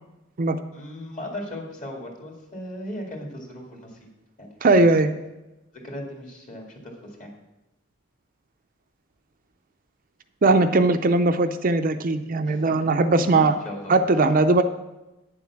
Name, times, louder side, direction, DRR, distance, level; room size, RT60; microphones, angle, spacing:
voice 1, 0.7-4.1 4.4-5.0 5.7-7.3 12.4-12.8 13.3-13.9, left 1 dB, 40° left, 0 dB, 2.3 m, -37 dB
voice 2, 4.6-5.1 10.4-13.6 13.9-14.6, right 3 dB, 45° right, 8 dB, 0.5 m, -19 dB
9.4 x 7.3 x 5.9 m, 1.0 s
head